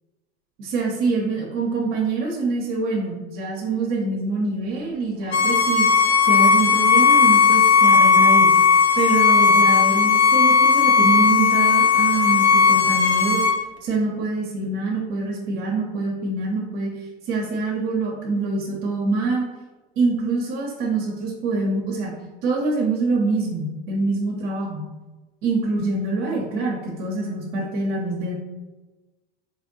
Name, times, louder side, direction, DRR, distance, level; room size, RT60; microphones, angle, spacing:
voice 1, 0.6-5.9 6.2-8.5 9.0-13.4 13.8-16.9 17.3-19.4 20.0-22.1 22.4-24.8 25.4-28.3, right 3 dB, 55° right, -3 dB, 1.1 m, -25 dB
Bowed string instrument, 5.3-13.6, left 5 dB, 85° left, 0.8 m, -16 dB
3.5 x 3.4 x 4.0 m, 1.2 s
hypercardioid pair, 80°, 31 cm